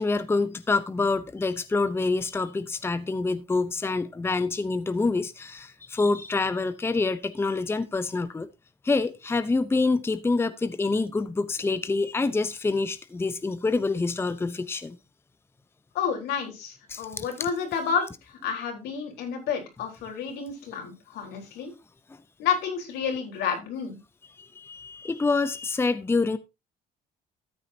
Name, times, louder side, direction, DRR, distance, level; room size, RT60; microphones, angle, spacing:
voice 1, 0.0-8.5 8.8-15.0 16.9-17.2 24.4-26.4, left 3 dB, 15° left, 0.7 m, -26 dB
voice 2, 15.9-21.7 22.4-24.0, left 7 dB, 85° left, 4.0 m, -30 dB
13.5 x 8.6 x 2.8 m
cardioid pair, 110°, 17 cm